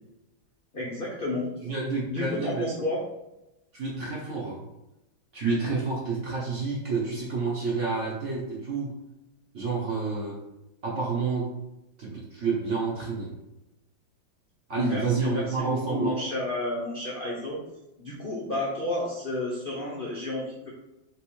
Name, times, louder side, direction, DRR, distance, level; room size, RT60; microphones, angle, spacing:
voice 1, 0.7-1.5 2.1-3.0 14.8-17.6 18.0-20.7, left 2 dB, 80° left, -5 dB, 0.4 m, -31 dB
voice 2, 1.6-2.7 3.7-4.6 5.3-9.0 9.5-10.4 10.8-11.6 12.0-13.3 14.7-16.2, right 4 dB, 55° right, -5 dB, 0.8 m, -29 dB
3.5 x 3.0 x 4.4 m, 0.92 s
omnidirectional pair, 2.2 m